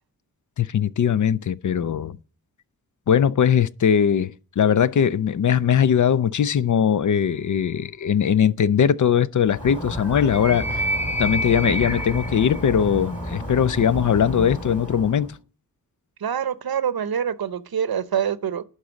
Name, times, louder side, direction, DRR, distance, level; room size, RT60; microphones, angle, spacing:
voice 1, 0.6-2.2 3.1-10.8 11.2-15.3, left 8 dB, 55° left, 0.4 m, -20 dB
Animal, 9.5-15.3, equal, 20° left, 2.1 m, -29 dB
voice 2, 11.5-11.8 16.2-18.6, right 8 dB, 80° right, 0.7 m, -26 dB
11.5 x 4.1 x 7.0 m
wide cardioid pair, 90°, 36 cm